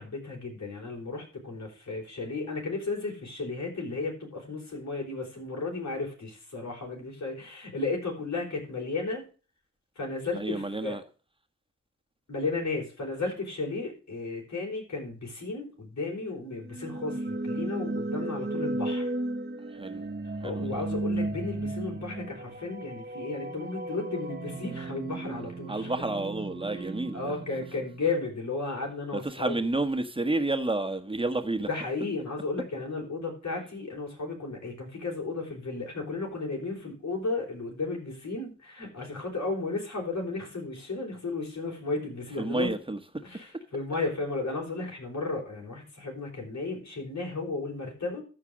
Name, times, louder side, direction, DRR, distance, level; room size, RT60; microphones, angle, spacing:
voice 1, 0.0-9.2 10.0-11.0 12.3-19.1 20.4-25.9 26.7-29.6 31.7-42.7 43.2-48.2, left 3 dB, 65° left, 4.6 m, -34 dB
voice 2, 10.3-11.0 19.7-20.0 20.4-20.8 25.7-27.3 29.1-31.7 42.4-43.0, right 2 dB, 20° right, 1.4 m, -30 dB
sound 1, 16.6-28.5, right 2 dB, 35° right, 1.3 m, -35 dB
13.5 x 4.8 x 6.3 m
cardioid pair, 50°, 29 cm